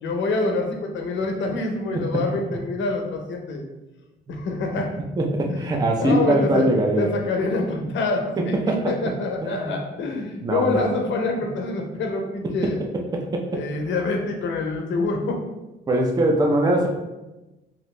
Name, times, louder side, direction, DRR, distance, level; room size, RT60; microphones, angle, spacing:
voice 1, 0.0-3.6 4.3-5.0 5.5-5.7 6.0-6.7 7.0-12.8 13.5-15.5, left 3 dB, 70° left, 3 dB, 0.6 m, -26 dB
voice 2, 5.2-7.1 8.4-8.9 9.4-9.8 10.4-10.8 13.3-13.6 15.9-16.9, right 1 dB, 20° right, 1 dB, 0.5 m, -22 dB
2.8 x 2.5 x 3.1 m, 1.0 s
cardioid pair, 90°, 20 cm